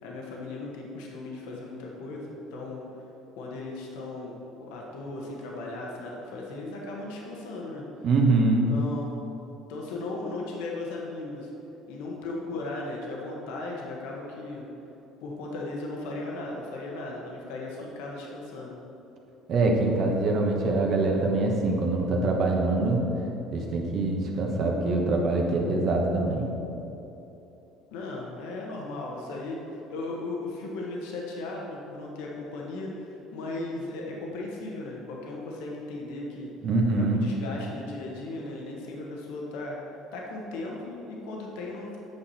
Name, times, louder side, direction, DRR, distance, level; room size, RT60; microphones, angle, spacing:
voice 1, 0.0-2.8 3.4-7.8 8.5-9.1 9.7-11.5 11.9-14.7 15.2-18.8 27.9-36.5 37.0-39.8 40.1-42.0, left 2 dB, 85° left, -2 dB, 1.2 m, -37 dB
voice 2, 8.0-8.7 19.5-23.1 23.5-26.5 36.6-37.2, right 2 dB, 50° right, 0 dB, 1.2 m, -24 dB
8.5 x 5.9 x 4.2 m, 3.0 s
cardioid pair, 120°, 0 cm